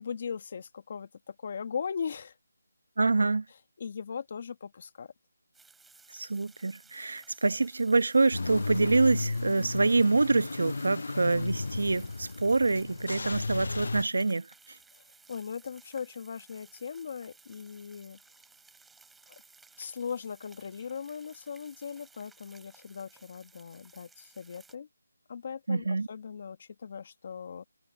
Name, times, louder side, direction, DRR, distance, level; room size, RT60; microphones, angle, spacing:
voice 1, 0.0-2.3 3.8-5.1 15.3-18.2 19.8-24.9 25.3-27.6, left 6 dB, 35° left, 1.4 m, -39 dB
voice 2, 3.0-3.4 6.1-14.5 25.7-26.1, right 3 dB, 75° right, 1.1 m, -26 dB
sound 1, 5.5-24.8, right 4 dB, 5° right, 8.0 m, -58 dB
Car / Engine starting / Idling, 8.3-14.0, left 3 dB, 65° left, 0.4 m, -34 dB
figure-of-eight pair, 170°, 0 cm